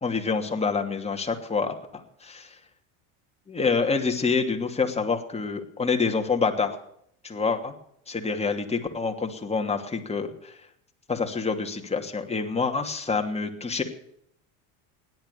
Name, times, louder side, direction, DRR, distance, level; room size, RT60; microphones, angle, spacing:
voice 1, 0.0-2.6 3.5-6.8 7.2-7.7 8.1-10.6 11.1-13.8, left 4 dB, 15° left, 4 dB, 2.7 m, -27 dB
17.0 x 11.5 x 7.0 m, 0.70 s
supercardioid pair, 105°, 40 cm